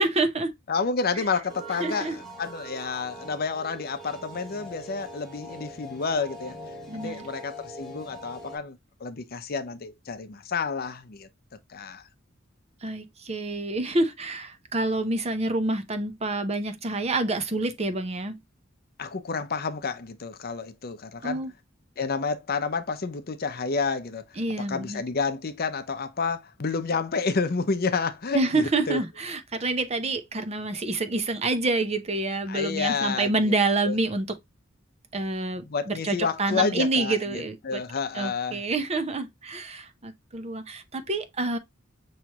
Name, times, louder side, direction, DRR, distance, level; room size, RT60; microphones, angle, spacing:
voice 1, 0.0-0.5 1.2-1.3 1.8-2.2 6.9-7.3 12.8-18.4 21.2-21.5 24.4-25.0 28.3-34.4 35.1-37.8 38.1-41.6, right 2 dB, 30° right, 0.7 m, -27 dB
voice 2, 0.7-6.6 6.9-11.3 11.7-12.0 19.0-21.4 22.0-24.2 24.7-29.0 32.5-33.5 33.9-34.0 35.6-38.6, left 4 dB, 50° left, 0.6 m, -30 dB
sound 1, 1.5-8.6, right 1 dB, ahead, 1.7 m, -42 dB
5.9 x 3.1 x 2.8 m
head